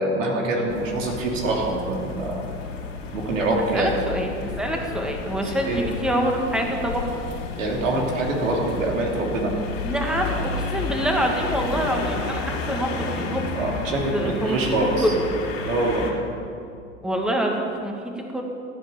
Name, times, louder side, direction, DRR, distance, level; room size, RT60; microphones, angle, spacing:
voice 1, 0.0-2.4 3.1-3.9 5.4-5.8 7.6-9.5 13.5-15.1 15.6-16.1, right 2 dB, 80° right, -1 dB, 3.0 m, -25 dB
sound 1, 0.7-16.1, left 4 dB, 70° left, 3.2 m, -32 dB
voice 2, 3.7-7.2 9.8-13.4 14.1-15.3 17.0-18.4, right 1 dB, ahead, 1 dB, 1.8 m, -26 dB
15.0 x 8.0 x 6.9 m, 2.5 s
hypercardioid pair, 90°, 39 cm